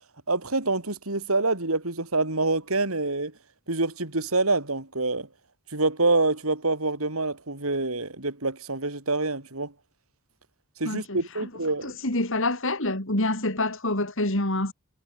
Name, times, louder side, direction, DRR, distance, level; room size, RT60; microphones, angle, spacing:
voice 1, 0.3-3.3 3.7-5.3 5.7-9.7 10.8-12.0, right 3 dB, 90° right, 4.6 m, -26 dB
voice 2, 10.8-11.4 11.8-14.7, left 2 dB, 65° left, 6.1 m, -27 dB
head